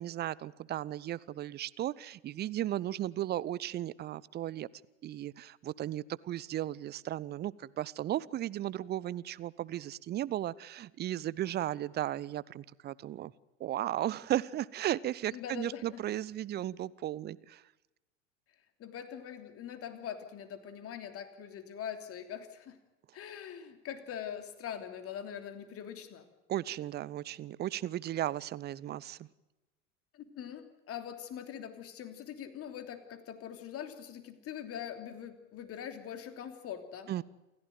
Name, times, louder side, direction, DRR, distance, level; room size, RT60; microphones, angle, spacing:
voice 1, 0.0-4.7 5.0-13.3 13.6-17.6 26.5-29.3 37.1-37.2, right 13 dB, 25° right, 22 dB, 0.7 m, -35 dB
voice 2, 15.3-16.0 18.8-22.8 23.1-26.2 30.1-37.1, left 9 dB, 35° left, 8 dB, 3.1 m, -43 dB
28.5 x 15.5 x 9.4 m, 1.0 s
figure-of-eight pair, 80°, 39 cm